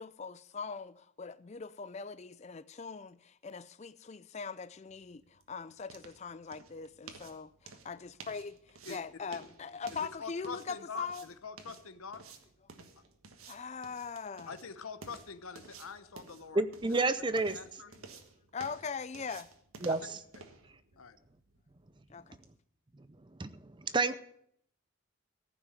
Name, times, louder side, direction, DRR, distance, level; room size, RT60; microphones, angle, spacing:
voice 1, 0.0-11.3 13.5-14.5 18.0-18.1 18.5-19.5 22.1-22.4, left 5 dB, 30° left, 0.4 m, -41 dB
sound 1, 4.7-22.6, right 4 dB, 80° right, 1.5 m, -54 dB
voice 2, 10.0-12.2 14.5-16.6 16.9-17.0 17.5-17.9 19.9-20.0 20.3-20.5 21.0-21.2, left 5 dB, 80° left, 1.0 m, -45 dB
voice 3, 16.5-17.6 19.8-20.2 23.4-23.6 23.9-24.2, right 3 dB, 20° right, 0.5 m, -29 dB
14.5 x 6.1 x 9.2 m
head